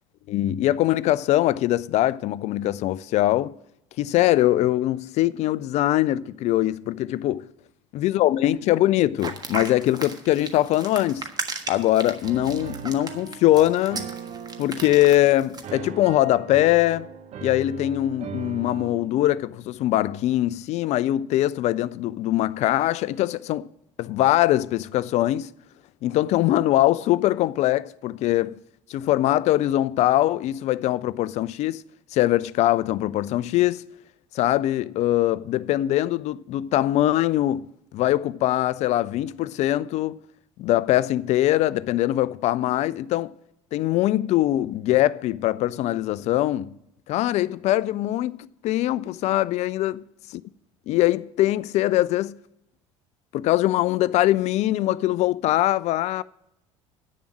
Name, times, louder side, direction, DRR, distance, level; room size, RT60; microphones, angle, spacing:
voice 1, 0.3-3.5 4.0-7.5 8.0-11.3 11.7-14.1 14.6-17.1 17.4-23.7 24.0-25.5 26.0-28.5 28.9-31.8 32.1-33.8 34.3-40.2 40.6-43.3 43.7-46.7 47.1-50.0 50.9-52.3 53.3-56.2, left 14 dB, 45° left, 0.4 m, -22 dB
sound 1, 9.2-15.7, right 4 dB, 25° right, 1.4 m, -35 dB
Piano, 12.2-19.1, right 7 dB, 40° right, 0.8 m, -38 dB
10.5 x 6.9 x 7.4 m
figure-of-eight pair, 65°, 16 cm